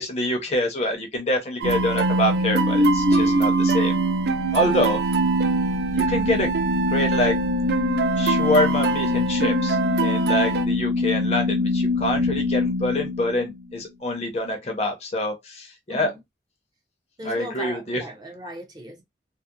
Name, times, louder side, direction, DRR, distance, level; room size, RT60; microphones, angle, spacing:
voice 1, 0.0-4.0 4.5-5.0 5.9-6.6 6.9-7.4 8.2-16.1 17.2-18.0, left 1 dB, 35° left, 0.6 m, -26 dB
sound 1, 1.6-10.7, right 5 dB, 60° right, 0.3 m, -27 dB
sound 2, 1.6-13.8, left 1 dB, 80° right, 0.7 m, -23 dB
voice 2, 4.6-5.0 8.1-8.3 15.9-16.2 17.2-19.0, equal, 25° right, 0.6 m, -38 dB
2.7 x 2.0 x 2.3 m
head